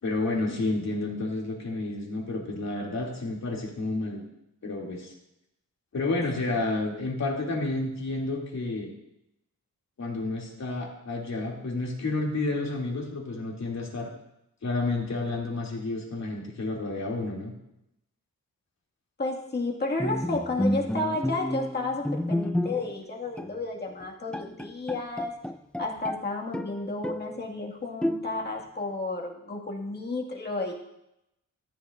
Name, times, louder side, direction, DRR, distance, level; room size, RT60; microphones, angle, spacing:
voice 1, 0.0-4.2 4.6-5.1 5.9-8.9 10.0-14.1 14.6-17.5, left 2 dB, 55° left, -2 dB, 2.8 m, -30 dB
voice 2, 19.2-25.3 25.8-30.7, left 2 dB, 30° left, -1 dB, 2.1 m, -32 dB
Bowed string instrument, 20.0-23.0 23.4-23.6 24.0-24.1 24.3-26.2 26.5-27.4 28.0-28.6, left 1 dB, 5° left, 0.3 m, -30 dB
14.0 x 11.0 x 2.6 m, 0.85 s
wide cardioid pair, 105°, 32 cm